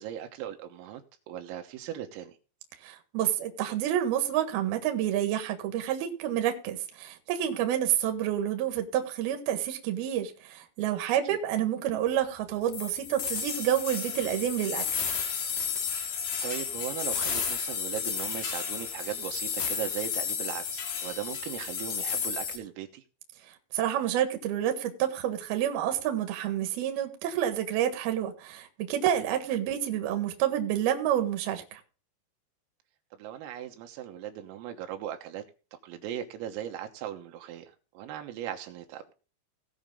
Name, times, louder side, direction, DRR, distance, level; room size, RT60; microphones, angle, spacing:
voice 1, 0.0-2.4 11.1-11.4 16.4-23.1 33.1-35.5 35.7-39.1, right 11 dB, 85° right, 5 dB, 3.8 m, -38 dB
voice 2, 2.8-15.1 23.7-31.8, right 11 dB, 60° right, 6 dB, 3.0 m, -29 dB
sound 1, 12.7-22.6, left 7 dB, 55° left, 2.5 m, -32 dB
18.5 x 6.4 x 3.7 m, 0.35 s
omnidirectional pair, 5.9 m